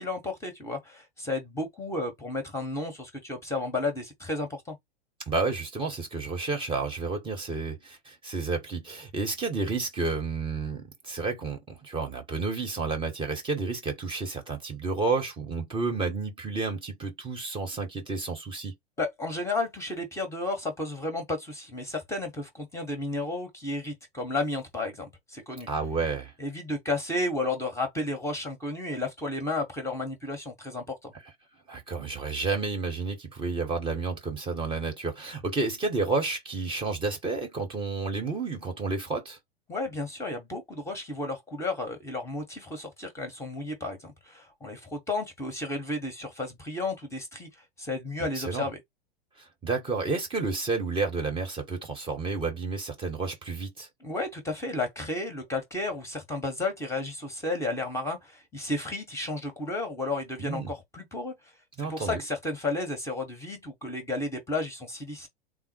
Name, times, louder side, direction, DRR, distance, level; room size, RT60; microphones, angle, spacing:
voice 1, 0.0-4.7 19.0-25.7 26.4-31.1 39.7-48.8 54.0-61.5 61.8-65.3, left 2 dB, 10° left, 0.9 m, -33 dB
voice 2, 5.3-18.7 25.7-26.3 31.7-39.4 48.3-48.7 49.4-53.9 60.4-60.7 61.8-62.2, right 4 dB, 15° right, 0.9 m, -31 dB
3.7 x 2.0 x 4.3 m
figure-of-eight pair, 100°, 32 cm